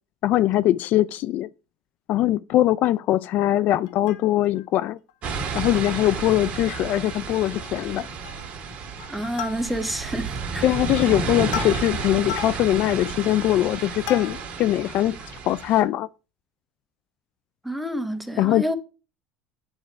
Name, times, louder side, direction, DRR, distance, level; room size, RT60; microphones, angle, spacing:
voice 1, 0.2-1.5 2.1-5.0 5.5-8.1 10.6-15.2 15.4-16.1 18.4-18.7, left 14 dB, 55° left, 0.3 m, -22 dB
Plucked string instrument, 3.8-4.7 5.1-5.2 5.4-5.6 6.1-6.8 7.1-7.2 7.5-7.9 8.2-8.6 9.0-10.0 10.6-14.7 15.2-15.3, left 9 dB, 85° left, 0.9 m, -37 dB
sound 1, 5.2-15.8, right 5 dB, 40° right, 1.8 m, -32 dB
voice 2, 9.1-10.7 17.6-18.7, equal, ahead, 1.1 m, -29 dB
8.8 x 4.3 x 4.6 m
supercardioid pair, 110°, 3 cm